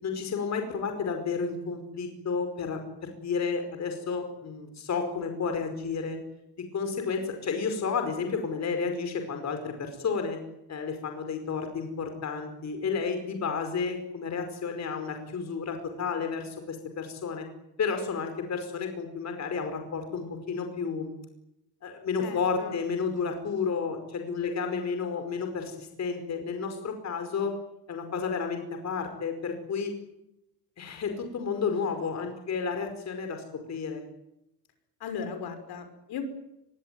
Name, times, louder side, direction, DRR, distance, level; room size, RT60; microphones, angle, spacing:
voice 1, 0.0-6.2 6.7-10.4 10.7-17.4 17.8-21.1 21.8-27.5 27.9-29.9 30.8-34.0, left 5 dB, 40° left, 6 dB, 5.1 m, -31 dB
voice 2, 22.2-22.7 35.0-36.2, left 6 dB, 70° left, 8 dB, 5.9 m, -37 dB
24.5 x 22.5 x 9.5 m, 0.86 s
cardioid pair, 145°, 40 cm